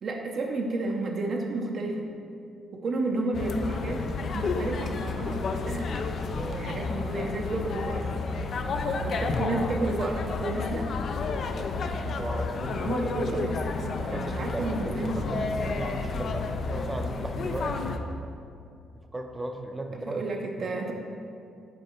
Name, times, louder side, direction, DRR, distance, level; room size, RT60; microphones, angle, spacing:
voice 1, 0.0-2.1 2.7-4.0 4.3-5.9 6.3-8.7 9.0-10.9 12.8-15.7 20.1-20.9, right 2 dB, 55° right, 1 dB, 0.6 m, -32 dB
sound 1, 3.3-18.0, left 4 dB, 55° left, 0.4 m, -31 dB
voice 2, 12.2-13.5 14.0-17.9 19.1-20.5, right 2 dB, 15° right, 5 dB, 0.6 m, -36 dB
6.3 x 4.5 x 4.4 m, 2.5 s
cardioid pair, 90°, 0 cm